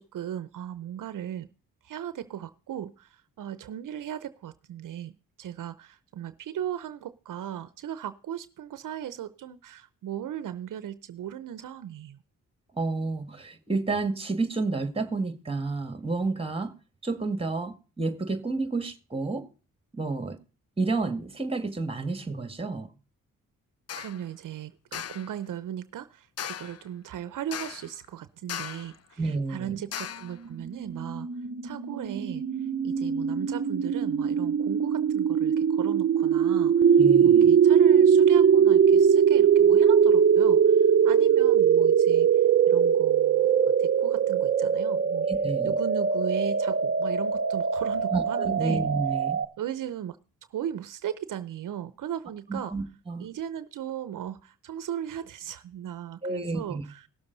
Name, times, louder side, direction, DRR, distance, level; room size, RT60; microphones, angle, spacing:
voice 1, 0.0-1.5 1.8-12.2 24.0-31.3 31.6-43.5 43.8-45.3 45.6-48.8 49.6-50.2 50.5-52.8 53.2-57.1, right 10 dB, 70° right, 0.7 m, -37 dB
voice 2, 12.8-16.7 17.0-19.5 19.9-20.4 20.8-22.9 29.2-29.8 37.0-37.5 45.3-45.7 48.1-49.4 52.5-53.3 56.2-56.8, right 3 dB, 15° right, 1.9 m, -30 dB
sound 1, 23.9-24.2 24.9-25.3 26.4-26.8 27.5-28.0 28.5-29.0 29.9-30.4, left 10 dB, 50° left, 0.5 m, -37 dB
sound 2, 30.3-49.5, right 7 dB, 40° right, 0.8 m, -21 dB
17.5 x 7.0 x 4.0 m
cardioid pair, 70°, 33 cm